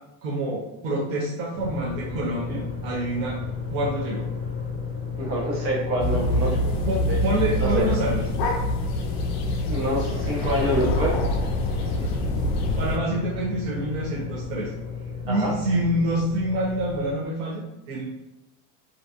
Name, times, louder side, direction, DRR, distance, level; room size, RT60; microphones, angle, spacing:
voice 1, 0.2-3.4 3.7-4.3 6.4-8.2 11.7-12.1 12.8-14.7 15.2-18.1, right 1 dB, 50° right, -5 dB, 0.5 m, -27 dB
sound 1, 1.5-17.1, left 5 dB, 25° left, 0.8 m, -34 dB
voice 2, 5.1-6.6 7.1-7.2 7.6-7.9 9.7-11.2 15.2-15.5, right 1 dB, 70° right, -4 dB, 1.2 m, -26 dB
sound 2, 6.0-13.0, left 1 dB, 50° left, 0.4 m, -25 dB
2.5 x 2.2 x 2.5 m, 0.94 s
supercardioid pair, 160°, 42 cm